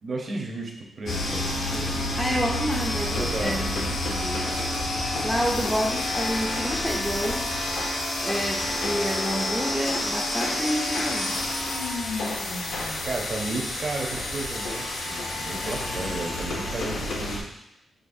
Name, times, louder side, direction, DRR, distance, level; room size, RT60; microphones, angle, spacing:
voice 1, 0.0-1.5 1.7-1.9 3.1-3.6 13.0-17.4, right 2 dB, 40° right, 0 dB, 0.7 m, -33 dB
sound 1, 1.1-17.4, left 1 dB, 70° left, 0.7 m, -29 dB
voice 2, 2.2-4.7 5.2-7.6 8.2-11.6, equal, ahead, -2 dB, 0.4 m, -29 dB
6.4 x 2.8 x 2.6 m, 0.82 s
wide cardioid pair, 170°, 0 cm